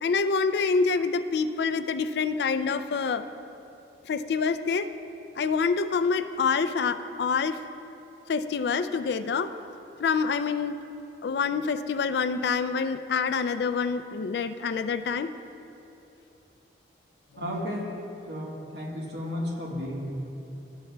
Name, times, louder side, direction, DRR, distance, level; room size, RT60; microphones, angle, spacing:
voice 1, 0.0-3.2 4.0-4.9 5.3-7.6 8.3-9.5 10.0-10.8 11.2-15.3, left 5 dB, 70° left, 11 dB, 0.3 m, -26 dB
voice 2, 17.4-17.9 18.3-20.1, left 1 dB, 75° right, -2 dB, 1.3 m, -33 dB
16.5 x 6.5 x 2.2 m, 2.8 s
head